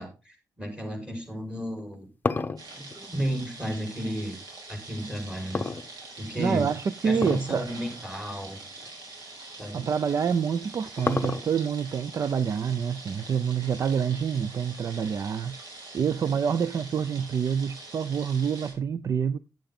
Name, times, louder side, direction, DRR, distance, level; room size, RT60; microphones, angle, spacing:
voice 1, 0.0-2.1 2.7-4.4 4.7-5.7 6.2-6.7 7.0-8.6 9.6-9.9 16.2-16.3, equal, 15° right, 4.9 m, -33 dB
sound 1, 1.7-4.2 5.5-6.4 7.1-7.6 7.9-8.0 8.8-8.9 10.3-11.8, left 4 dB, 25° left, 0.8 m, -31 dB
sound 2, 2.6-18.7, right 2 dB, 70° right, 5.3 m, -44 dB
voice 2, 6.4-7.7 9.7-15.6 15.9-19.4, right 7 dB, 50° right, 0.5 m, -27 dB
10.5 x 8.7 x 3.8 m
cardioid pair, 105°, 7 cm